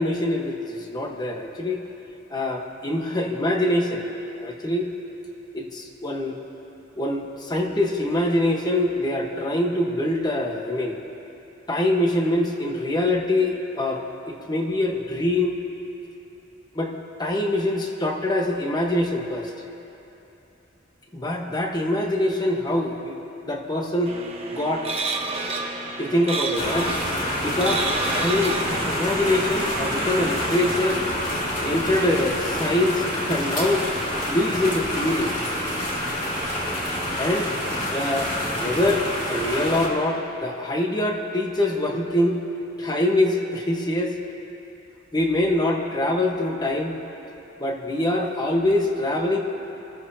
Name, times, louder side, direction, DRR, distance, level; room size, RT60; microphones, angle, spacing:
voice 1, 0.0-1.8 2.3-4.1 4.4-4.9 5.5-6.4 6.9-11.0 11.7-15.5 16.7-16.9 17.2-19.5 21.1-23.2 23.4-24.1 24.5-24.9 26.0-27.0 27.4-31.0 31.6-33.8 34.3-35.3 37.2-37.5 37.9-38.3 38.6-42.4 42.8-44.2 45.1-47.0 47.6-49.4, left 1 dB, 20° left, 1 dB, 1.3 m, -24 dB
sound 1, 24.1-30.8, right 3 dB, 30° right, 1.2 m, -31 dB
sound 2, 26.6-39.9, equal, 35° left, 2.4 m, -27 dB
29.0 x 14.0 x 2.8 m, 2.9 s
head